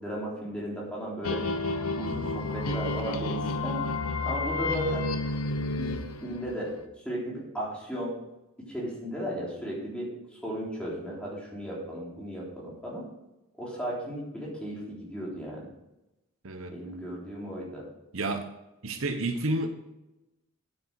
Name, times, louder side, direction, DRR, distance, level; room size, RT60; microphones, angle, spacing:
voice 1, 0.0-1.5 1.9-3.8 4.2-5.1 5.8-8.2 8.7-13.0 13.6-15.7 16.7-17.9, equal, 5° left, -5 dB, 3.5 m, -35 dB
sound 1, 1.2-6.8, left 3 dB, 85° left, 0.9 m, -31 dB
voice 2, 16.4-16.8 18.1-18.5 18.8-19.7, right 2 dB, 65° right, 7 dB, 0.9 m, -30 dB
9.2 x 8.9 x 4.7 m, 0.96 s
head